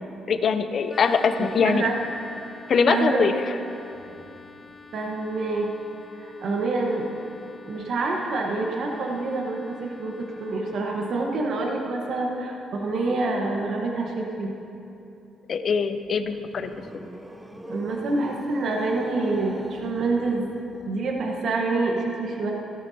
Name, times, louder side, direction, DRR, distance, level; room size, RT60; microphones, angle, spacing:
voice 1, 0.3-1.9 2.7-3.3 15.5-16.7, left 5 dB, 55° left, 9 dB, 0.6 m, -22 dB
sound 1, 0.9-11.5, left 4 dB, 15° left, 2.5 m, -47 dB
voice 2, 1.4-2.0 2.9-3.2 4.9-5.7 6.1-7.1 7.7-14.5 17.7-20.4 20.9-22.5, right 3 dB, 65° right, 0 dB, 1.2 m, -27 dB
sound 2, 15.9-21.3, equal, 10° right, 0.8 m, -41 dB
17.0 x 12.5 x 2.8 m, 2.9 s
cardioid pair, 90°, 0 cm